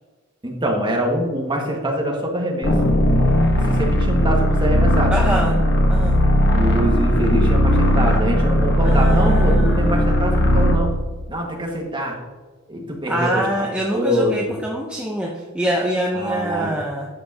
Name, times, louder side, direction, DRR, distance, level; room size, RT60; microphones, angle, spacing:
voice 1, 0.4-2.8 3.5-5.6 6.5-10.9 11.3-12.2 12.7-14.6 16.1-16.7, equal, 20° right, -1 dB, 1.8 m, -24 dB
sound 1, 2.6-10.9, equal, 50° left, 1.3 m, -17 dB
voice 2, 5.1-5.5 5.9-6.2 8.8-10.2 13.1-17.1, equal, 5° right, -2 dB, 0.8 m, -25 dB
11.0 x 7.5 x 2.9 m, 1.3 s
head